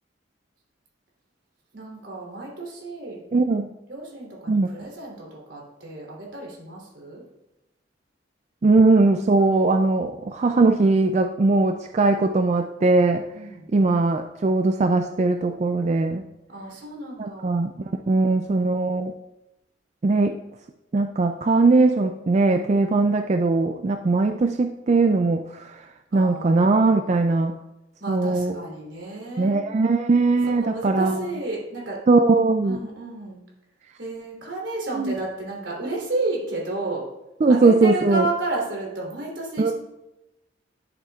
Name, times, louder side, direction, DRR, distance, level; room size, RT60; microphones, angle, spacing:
voice 1, 1.7-3.2 3.9-7.2 13.3-13.7 16.5-17.6 17.9-18.2 26.1-27.2 28.0-29.6 30.6-32.0 32.6-33.4 34.0-37.1 37.5-39.7, right 2 dB, 80° right, -3 dB, 3.2 m, -32 dB
voice 2, 3.3-3.7 4.5-4.7 8.6-13.2 13.7-16.2 17.2-17.7 18.1-19.1 20.0-20.4 20.9-25.8 26.1-27.5 28.1-28.6 29.4-31.2 32.1-32.8 34.9-35.1 37.4-38.2 39.6-39.7, right 3 dB, 35° right, 6 dB, 0.3 m, -20 dB
11.0 x 7.6 x 2.4 m, 0.94 s
head